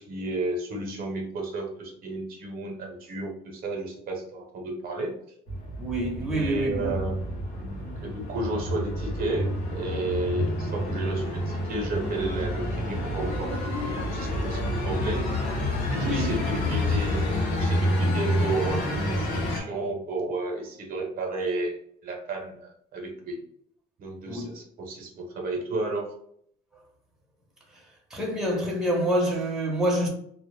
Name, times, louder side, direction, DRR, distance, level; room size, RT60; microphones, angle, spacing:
voice 1, 0.0-5.1 6.2-7.2 7.6-13.6 14.0-14.6 14.8-15.5 15.9-23.4 24.0-26.1, right 2 dB, 60° right, 0.7 m, -32 dB
sound 1, 5.5-19.6, left 1 dB, 90° left, 0.8 m, -28 dB
voice 2, 5.8-6.9 16.0-16.4 24.3-24.5 28.1-30.1, right 1 dB, 5° right, 0.7 m, -27 dB
2.1 x 2.0 x 3.1 m
cardioid pair, 110°, 17 cm